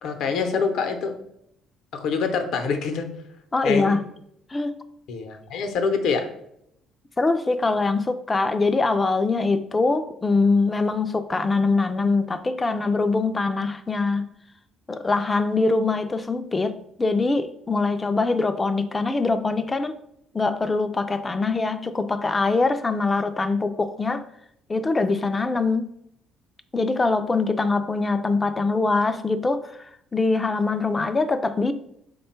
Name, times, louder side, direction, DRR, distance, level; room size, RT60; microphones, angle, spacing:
voice 1, 0.0-1.1 1.9-3.1 3.6-4.0 5.1-6.3, left 5 dB, 75° left, 0.7 m, -25 dB
voice 2, 3.5-4.0 4.5-4.8 7.2-14.3 14.9-20.0 20.3-24.2 24.7-25.9 26.7-31.7, left 3 dB, 20° left, 0.4 m, -23 dB
5.1 x 2.2 x 4.3 m
cardioid pair, 95°, 0 cm